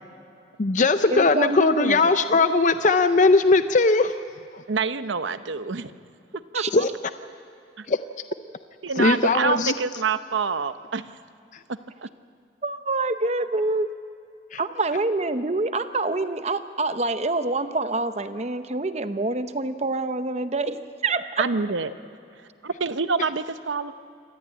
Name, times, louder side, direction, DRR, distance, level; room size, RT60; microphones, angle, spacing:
voice 1, 0.6-4.1 6.7-6.9 7.9-8.0 9.0-9.7 14.5-14.6, left 3 dB, 40° left, 10 dB, 0.5 m, -19 dB
voice 2, 1.1-2.1 6.5-6.7 12.6-13.9 14.6-21.4, right 2 dB, 35° right, 10 dB, 0.8 m, -26 dB
voice 3, 4.7-5.9 6.5-6.9 7.8-7.9 8.8-11.1 11.7-12.1 21.4-21.9 22.4-23.9, right 5 dB, 85° right, 12 dB, 0.8 m, -27 dB
26.5 x 14.0 x 8.8 m, 2.6 s
head